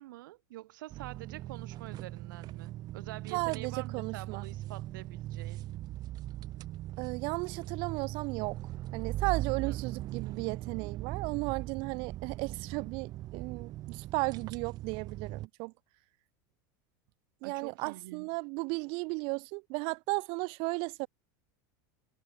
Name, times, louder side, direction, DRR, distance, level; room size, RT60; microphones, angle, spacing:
voice 1, 0.0-5.6 9.7-10.0 17.4-18.3, right 17 dB, 85° right, 1.4 m, -46 dB
sound 1, 0.9-15.5, right 15 dB, 40° right, 1.3 m, -39 dB
voice 2, 3.3-4.4 7.0-8.6 8.9-15.7 17.4-21.1, right 30 dB, 55° right, 1.7 m, -35 dB
supercardioid pair, 140°, 10 cm